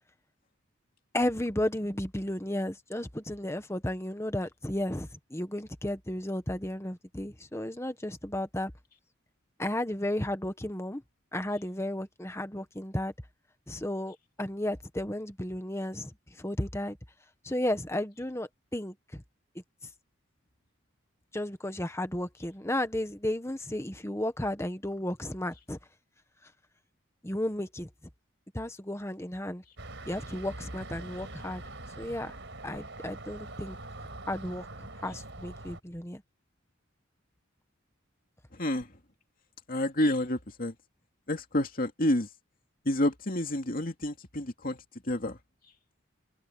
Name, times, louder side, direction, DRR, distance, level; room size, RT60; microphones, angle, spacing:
voice 1, 1.1-8.7 9.6-11.0 11.3-13.1 13.7-16.1 16.4-17.0 17.4-19.2 21.3-25.8 27.2-27.9 28.5-29.6 30.1-31.6 32.0-32.3 32.6-33.8 34.3-36.2, left 1 dB, 15° left, 1.4 m, -33 dB
sound 1, 29.8-35.8, right 2 dB, 60° right, 5.1 m, -43 dB
voice 2, 38.5-38.9 39.7-40.7 41.3-42.3 42.8-44.8 45.0-45.4, left 1 dB, 45° left, 2.6 m, -29 dB
head